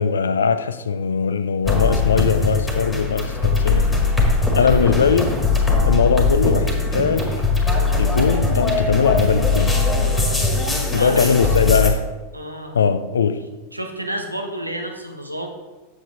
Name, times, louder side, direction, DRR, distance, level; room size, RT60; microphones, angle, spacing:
voice 1, 0.0-3.9 4.5-5.4 5.8-7.4 7.9-9.9 10.9-12.1 12.7-13.5, left 6 dB, 70° left, 0.4 m, -20 dB
sound 1, 1.6-11.9, left 3 dB, 10° left, 1.8 m, -20 dB
voice 2, 3.4-3.8 4.6-4.7 10.0-10.5 10.9-11.3 12.3-12.8 13.7-15.5, right 1 dB, 85° right, 1.0 m, -31 dB
8.0 x 7.4 x 3.8 m
figure-of-eight pair, 90°, 0 cm